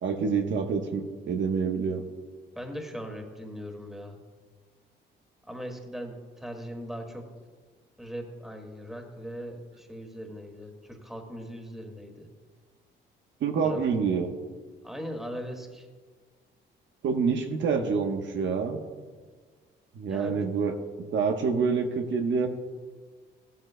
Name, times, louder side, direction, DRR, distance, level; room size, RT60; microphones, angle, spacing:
voice 1, 0.0-2.0 13.4-14.3 17.0-18.8 19.9-20.7 21.1-22.5, right 5 dB, 70° right, 4 dB, 1.1 m, -27 dB
voice 2, 2.6-4.2 5.5-7.2 8.0-12.3 13.6-13.8 14.8-15.9 20.1-20.5, equal, ahead, 3 dB, 2.0 m, -39 dB
15.5 x 13.0 x 2.2 m, 1.5 s
cardioid pair, 90°, 20 cm